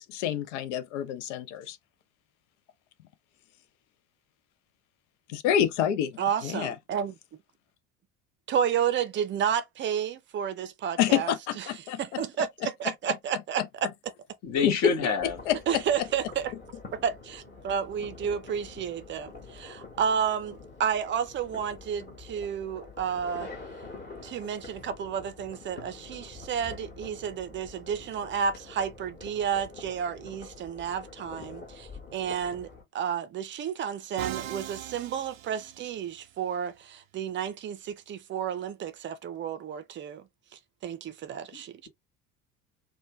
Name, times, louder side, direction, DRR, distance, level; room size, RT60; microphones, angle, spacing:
voice 1, 0.0-1.8 5.3-6.7 11.0-12.0 14.6-14.8 15.5-15.8, left 10 dB, 60° left, 0.6 m, -28 dB
voice 2, 6.2-7.2 8.5-13.6 15.7-16.5 16.9-23.5 24.2-32.7 32.9-41.9, right 8 dB, 30° right, 0.6 m, -31 dB
voice 3, 14.4-15.4 41.5-41.9, left 5 dB, 40° left, 1.3 m, -28 dB
sound 1, 15.2-32.8, left 3 dB, 25° left, 1.4 m, -46 dB
Musical instrument, 34.2-36.3, right 13 dB, 75° right, 0.5 m, -40 dB
3.1 x 2.2 x 3.0 m
figure-of-eight pair, 65°, 41 cm